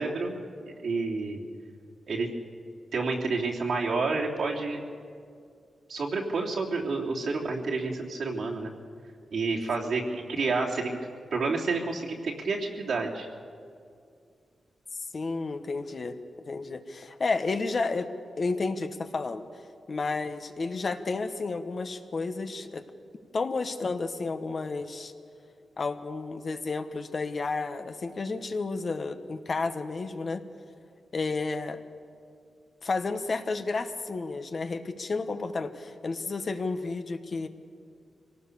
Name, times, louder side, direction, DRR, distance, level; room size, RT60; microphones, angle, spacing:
voice 1, 0.0-1.4 2.1-2.3 2.9-4.8 5.9-8.7 9.3-13.3, right 3 dB, 75° right, -3 dB, 3.3 m, -29 dB
voice 2, 15.1-16.2 16.5-18.1 18.4-19.4 19.9-22.8 23.3-25.1 25.8-30.4 31.1-31.8 32.8-37.5, left 3 dB, 50° left, 8 dB, 1.3 m, -31 dB
24.5 x 18.0 x 7.0 m, 2.3 s
cardioid pair, 75°, 0 cm